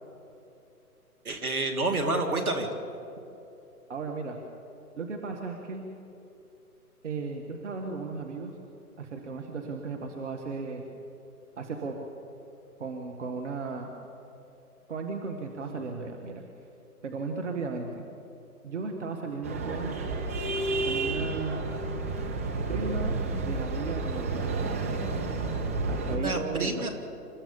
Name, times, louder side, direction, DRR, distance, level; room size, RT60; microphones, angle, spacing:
voice 1, 1.2-2.7 26.0-26.9, right 2 dB, 65° right, 5 dB, 2.8 m, -29 dB
voice 2, 3.9-4.4 5.0-5.8 7.0-8.5 9.0-10.8 11.6-12.1 12.8-13.9 14.9-16.4 17.0-18.0 18.6-20.0 20.8-21.6 22.7-24.5 25.9-26.9, right 4 dB, 50° right, 3 dB, 1.8 m, -35 dB
sound 1, 19.4-26.2, right 3 dB, 10° right, 0.6 m, -31 dB
27.5 x 13.5 x 7.2 m, 2.9 s
figure-of-eight pair, 135°, 46 cm